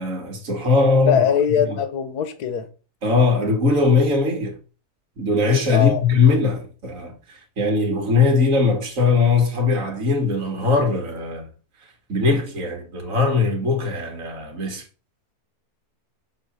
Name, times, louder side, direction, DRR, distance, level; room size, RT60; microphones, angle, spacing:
voice 1, 0.0-1.3 1.7-1.8 3.0-4.6 5.2-11.5 12.1-14.8, left 4 dB, 55° right, 2.3 m, -20 dB
voice 2, 1.1-2.7 5.7-6.0, left 8 dB, 70° left, 1.5 m, -21 dB
8.1 x 3.0 x 6.2 m
omnidirectional pair, 1.7 m